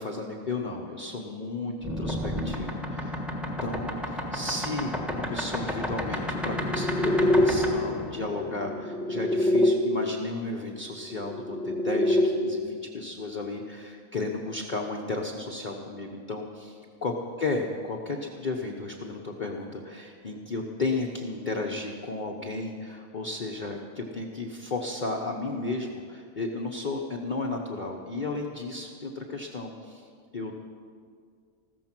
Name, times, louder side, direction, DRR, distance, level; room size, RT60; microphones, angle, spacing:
voice 1, 0.0-16.7 17.0-17.1 17.4-30.1 30.3-30.6, left 3 dB, 40° left, 0 dB, 1.0 m, -34 dB
sound 1, 1.8-9.7 11.0-12.3, left 1 dB, ahead, 1.3 m, -27 dB
15.0 x 14.0 x 6.0 m, 2.2 s
omnidirectional pair, 1.4 m